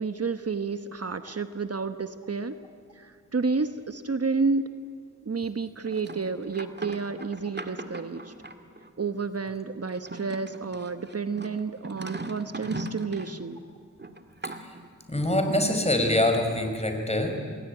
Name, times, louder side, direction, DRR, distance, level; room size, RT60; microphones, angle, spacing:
voice 1, 0.0-2.6 3.0-4.6 5.2-8.3 9.0-13.6, right 4 dB, 50° right, 10 dB, 1.1 m, -30 dB
sound 1, 5.8-8.9 9.9-13.4 14.0-14.9, right 2 dB, 35° right, 1.9 m, -39 dB
voice 2, 15.1-17.4, left 1 dB, 20° left, 4 dB, 5.0 m, -24 dB
27.5 x 20.5 x 9.7 m, 2.3 s
wide cardioid pair, 70°, 32 cm